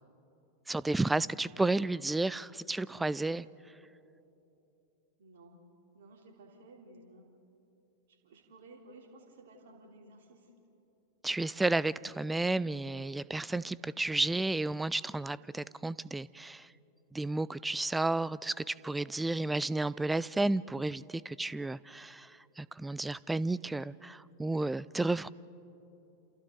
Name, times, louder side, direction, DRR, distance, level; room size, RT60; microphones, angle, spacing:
voice 1, 0.7-3.5 11.2-16.7 17.1-22.3 22.6-25.3, right 2 dB, 5° right, 21 dB, 0.4 m, -32 dB
voice 2, 5.2-5.6 5.9-7.3 8.1-10.5, right 2 dB, 60° right, 1 dB, 3.5 m, -55 dB
29.0 x 28.0 x 4.0 m, 2.9 s
figure-of-eight pair, 90°, 0 cm